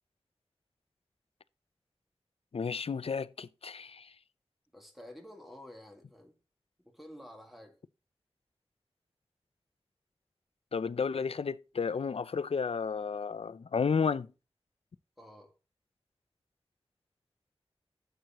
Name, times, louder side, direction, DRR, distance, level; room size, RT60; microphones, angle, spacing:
voice 1, 2.5-4.1 10.7-14.3, left 5 dB, 75° left, 0.5 m, -32 dB
voice 2, 4.7-6.3 6.8-7.8 15.2-15.5, left 1 dB, ahead, 2.1 m, -50 dB
12.5 x 7.8 x 3.0 m
wide cardioid pair, 60°, 10 cm